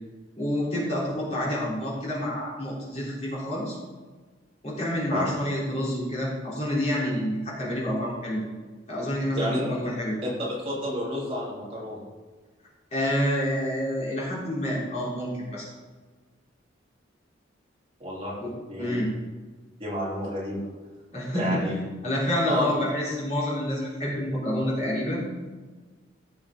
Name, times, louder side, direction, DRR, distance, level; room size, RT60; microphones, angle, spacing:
voice 1, 0.4-3.8 4.6-8.5 8.9-10.2 12.9-15.7 18.4-18.5 18.8-19.1 21.1-21.6 22.0-25.2, equal, 35° left, -6 dB, 3.5 m, -28 dB
voice 2, 9.3-9.7 10.4-12.0 18.0-18.3 18.7-19.0 19.8-20.7 21.3-21.7 22.5-22.8, equal, 30° right, -6 dB, 3.2 m, -30 dB
16.0 x 7.0 x 3.7 m, 1.4 s
head